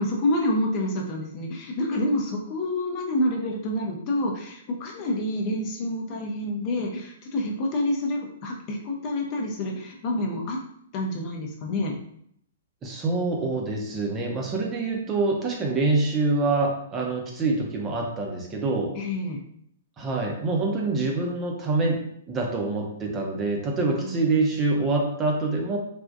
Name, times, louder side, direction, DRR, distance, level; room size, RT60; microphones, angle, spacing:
voice 1, 0.0-10.6 10.9-11.9 19.0-19.4 24.0-24.2, left 1 dB, 35° left, 0 dB, 0.6 m, -28 dB
voice 2, 12.8-18.9 20.0-22.0 22.3-25.8, right 3 dB, 20° right, 0 dB, 0.7 m, -25 dB
3.5 x 2.3 x 2.6 m, 0.70 s
figure-of-eight pair, 120°, 0 cm